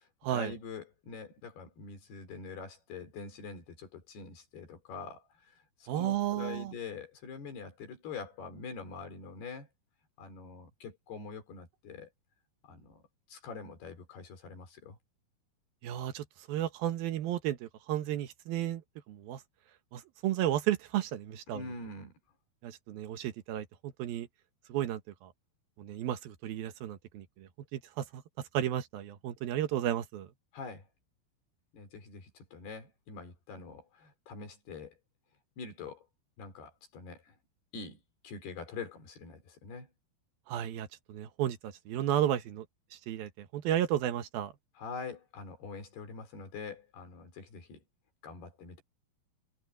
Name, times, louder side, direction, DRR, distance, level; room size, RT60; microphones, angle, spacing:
voice 1, 0.0-9.7 10.2-12.1 12.6-13.0 13.3-15.0 21.5-22.1 30.5-30.9 31.7-34.9 35.6-36.1 36.4-37.4 37.7-39.9 44.8-47.8 48.2-48.8, left 4 dB, 85° left, 6.4 m, -44 dB
voice 2, 5.9-6.7 15.8-18.8 19.1-19.4 19.9-21.6 22.6-24.3 24.7-25.3 25.8-28.2 28.5-30.3 40.5-42.7 42.9-44.5, right 12 dB, 75° right, 3.0 m, -33 dB
omnidirectional pair, 4.5 m